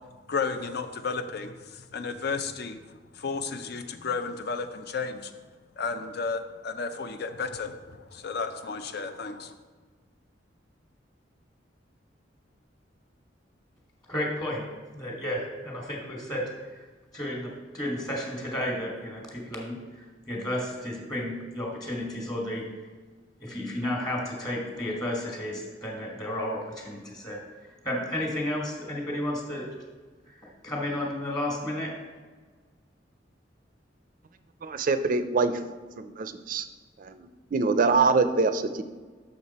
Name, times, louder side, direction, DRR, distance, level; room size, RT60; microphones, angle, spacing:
voice 1, 0.3-1.5 1.9-2.8 3.1-5.3 5.8-9.5, left 4 dB, 60° left, 9 dB, 0.6 m, -32 dB
voice 2, 14.1-14.6 14.9-16.4 16.7-16.8 17.1-22.6 23.4-27.4 27.8-29.6 30.3-31.9, left 1 dB, 20° left, -1 dB, 1.6 m, -32 dB
voice 3, 34.6-35.6 36.0-36.7 37.0-38.8, right 4 dB, 50° right, 10 dB, 0.4 m, -25 dB
6.6 x 6.1 x 4.2 m, 1.4 s
head